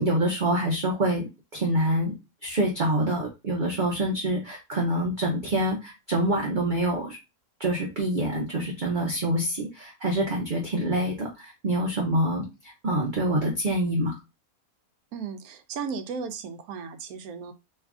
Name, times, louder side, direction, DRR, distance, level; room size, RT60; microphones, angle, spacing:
voice 1, 0.0-2.1 2.4-7.2 7.6-12.4 12.8-14.2, right 1 dB, 45° right, 0.7 m, -26 dB
voice 2, 15.1-17.5, right 5 dB, 80° right, 1.1 m, -35 dB
3.1 x 2.4 x 3.5 m
omnidirectional pair, 1.6 m